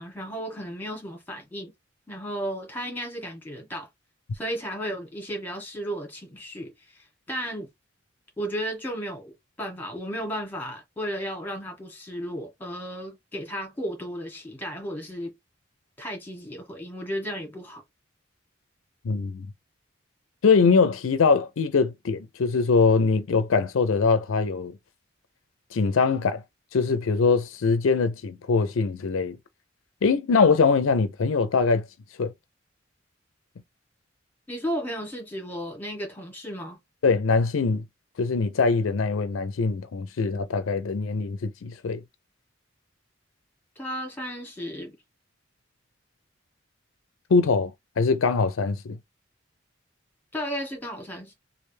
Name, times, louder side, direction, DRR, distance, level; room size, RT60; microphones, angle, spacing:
voice 1, 0.0-1.7 2.1-3.9 4.3-7.7 8.4-15.3 16.0-17.8 34.5-36.8 43.7-44.9 50.3-51.3, equal, 10° left, 1.5 m, -34 dB
voice 2, 19.0-19.5 20.4-24.7 25.7-26.4 26.7-29.4 30.0-31.8 32.2-32.3 37.0-37.8 38.2-42.0 47.3-49.0, left 4 dB, 90° left, 0.5 m, -22 dB
3.2 x 2.5 x 3.2 m
head